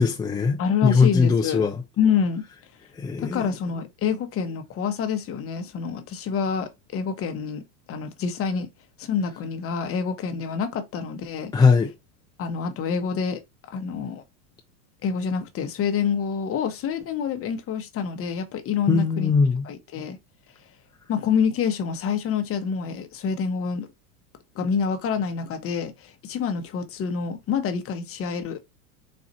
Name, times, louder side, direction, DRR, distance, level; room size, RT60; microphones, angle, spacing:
voice 1, 0.0-1.8 3.0-3.5 4.0-4.2 11.5-11.9 18.9-19.7, left 5 dB, 10° left, 0.5 m, -20 dB
voice 2, 0.6-1.7 2.0-2.4 3.2-8.7 9.0-11.5 12.4-13.4 13.7-14.2 15.0-19.3 19.6-20.2 21.1-23.9 24.5-28.6, left 6 dB, 30° left, 0.9 m, -27 dB
4.2 x 2.4 x 4.0 m
supercardioid pair, 120°, 44 cm